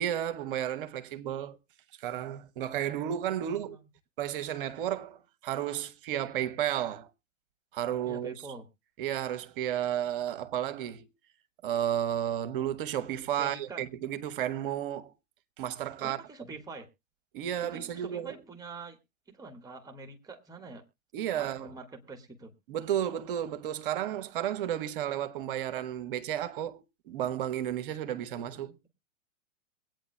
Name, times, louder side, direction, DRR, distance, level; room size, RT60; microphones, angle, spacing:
voice 1, 0.0-1.6 2.0-3.8 4.2-7.1 7.7-8.3 9.0-11.1 11.6-15.1 15.6-16.2 17.3-18.4 21.1-21.7 22.7-28.7, right 11 dB, 40° right, 1.0 m, -32 dB
voice 2, 3.4-3.8 8.0-8.7 13.4-13.8 16.0-16.9 17.6-19.0 19.3-20.8 21.4-22.5 28.3-28.9, right 3 dB, 10° right, 1.7 m, -45 dB
23.0 x 9.1 x 2.3 m
figure-of-eight pair, 105°, 40 cm